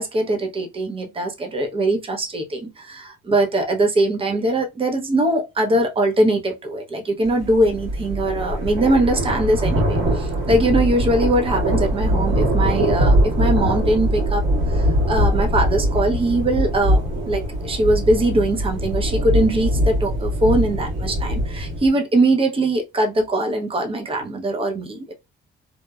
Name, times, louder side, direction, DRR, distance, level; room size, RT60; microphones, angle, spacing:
voice 1, 0.0-14.4 14.7-25.1, right 1 dB, 25° right, 0.7 m, -21 dB
sound 1, 7.4-21.9, equal, 70° right, 1.5 m, -22 dB
2.9 x 2.1 x 2.3 m
cardioid pair, 90°, 20 cm